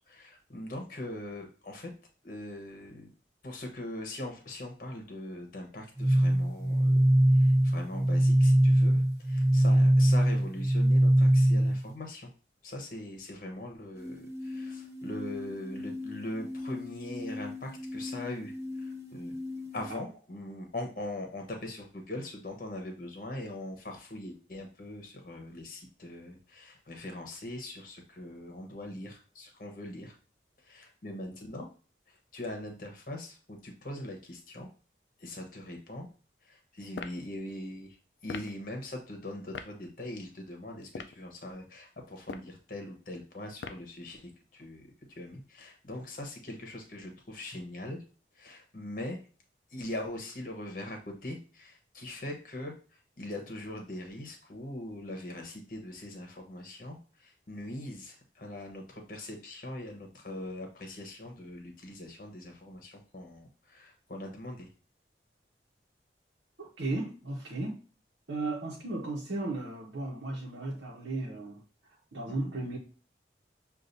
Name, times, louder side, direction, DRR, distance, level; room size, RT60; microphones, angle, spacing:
voice 1, 0.1-1.9 2.2-3.1 3.4-7.0 7.3-12.3 12.6-18.5 18.8-19.4 19.7-30.2 30.6-31.7 32.1-34.7 35.2-36.1 36.4-38.0 38.2-48.0 48.3-49.2 49.7-64.7 72.4-72.5, left 1 dB, 50° left, 2 dB, 0.9 m, -41 dB
sound 1, 6.0-11.9 14.0-20.0, right 1 dB, 15° right, 0.7 m, -25 dB
sound 2, 36.9-37.2 38.3-38.5 39.5-39.7 40.8-41.2 42.2-42.6 43.6-43.9, left 5 dB, 75° left, 0.4 m, -40 dB
voice 2, 66.6-67.8 68.3-71.6 72.1-72.8, right 2 dB, 85° right, -4 dB, 0.9 m, -35 dB
6.5 x 2.5 x 2.6 m, 0.38 s
head